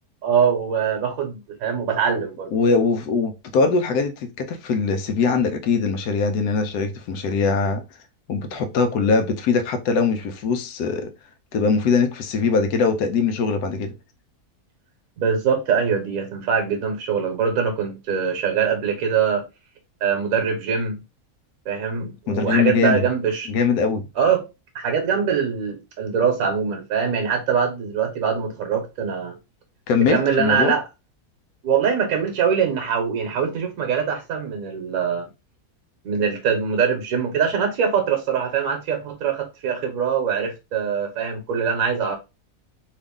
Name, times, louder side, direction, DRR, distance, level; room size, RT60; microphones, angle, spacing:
voice 1, 0.2-2.5 15.2-19.5 20.0-20.9 21.7-23.5 24.2-24.5 24.7-29.4 30.0-30.9 31.6-35.3 36.0-42.2, right 6 dB, 65° right, 1.2 m, -23 dB
voice 2, 2.5-7.8 8.3-11.1 11.5-13.9 22.3-23.0 23.5-24.1 29.9-30.7, left 5 dB, 90° left, 1.2 m, -21 dB
3.1 x 2.4 x 3.5 m
omnidirectional pair, 1.6 m